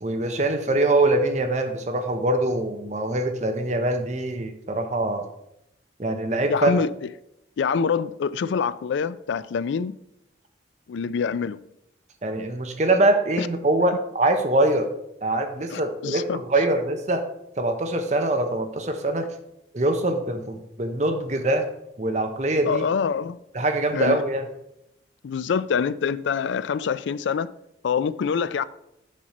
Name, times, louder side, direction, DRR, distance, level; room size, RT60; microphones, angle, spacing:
voice 1, 0.0-5.2 6.0-6.7 12.2-14.9 15.2-17.3 17.6-19.3 19.7-21.7 22.0-22.8 23.5-24.5, right 2 dB, 40° right, 0.8 m, -23 dB
voice 2, 6.5-6.9 7.6-9.9 10.9-11.6 13.4-13.5 15.7-16.4 22.6-23.4 23.9-24.2 25.2-27.5 27.8-28.6, left 6 dB, 75° left, 0.3 m, -25 dB
7.4 x 5.4 x 4.3 m
head